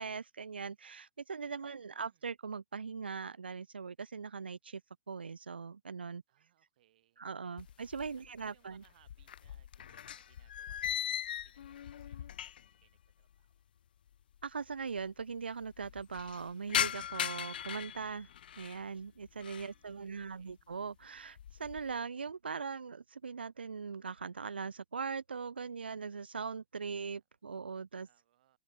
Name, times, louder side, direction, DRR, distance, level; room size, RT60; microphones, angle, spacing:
voice 1, 0.0-4.8 5.1-6.2 7.2-8.8 14.4-18.3 18.6-28.1, right 5 dB, 80° right, 0.4 m, -40 dB
voice 2, 1.4-2.3 6.3-7.6 8.1-13.6 19.5-20.6 28.0-28.6, right 13 dB, 55° right, 5.5 m, -72 dB
sound 1, 7.6-8.5 8.7-12.8 13.1-13.2 14.1-14.2 14.3-14.4 14.7-15.2 15.6-18.8 19.3-19.8 20.2-20.6 21.0-21.9, left 10 dB, 60° left, 0.5 m, -39 dB
figure-of-eight pair, 105°, 6 cm